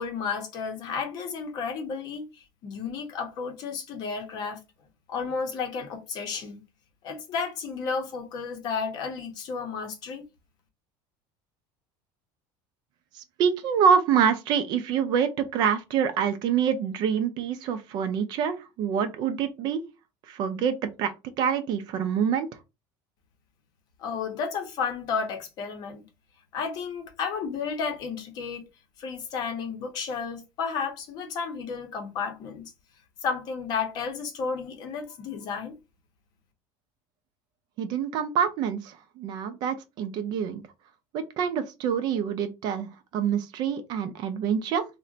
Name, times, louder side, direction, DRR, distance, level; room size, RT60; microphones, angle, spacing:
voice 1, 0.0-4.6 5.1-6.6 7.0-10.2 24.0-26.1 26.5-28.7 29.0-32.7 33.2-35.7, left 5 dB, 40° left, 0.7 m, -32 dB
voice 2, 13.1-19.8 20.3-22.5 37.8-40.6 41.1-44.8, right 7 dB, 40° right, 0.4 m, -26 dB
2.5 x 2.1 x 3.8 m
cardioid pair, 175°, 11 cm